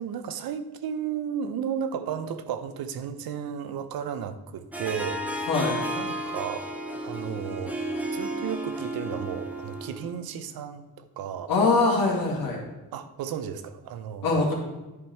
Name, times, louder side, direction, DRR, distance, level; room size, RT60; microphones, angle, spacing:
voice 1, 0.0-5.5 6.0-6.7 7.0-7.8 8.1-11.5 12.9-14.3, right 8 dB, 70° right, 11 dB, 0.8 m, -34 dB
Harp, 4.7-10.2, right 1 dB, 5° right, 0.8 m, -33 dB
voice 2, 11.5-12.6 14.2-14.5, left 3 dB, 65° left, -2 dB, 2.0 m, -22 dB
10.5 x 5.3 x 4.5 m, 1.1 s
cardioid pair, 175°, 37 cm